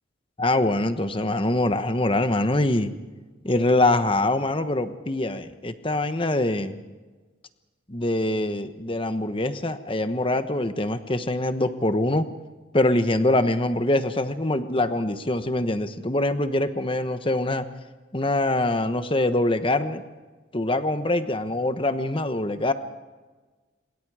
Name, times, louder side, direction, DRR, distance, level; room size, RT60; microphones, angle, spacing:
voice 1, 0.4-2.9 3.4-6.8 7.9-12.3 12.7-17.7 18.1-20.0 20.5-22.7, left 2 dB, 25° left, 10 dB, 1.1 m, -24 dB
26.5 x 22.0 x 4.9 m, 1.3 s
head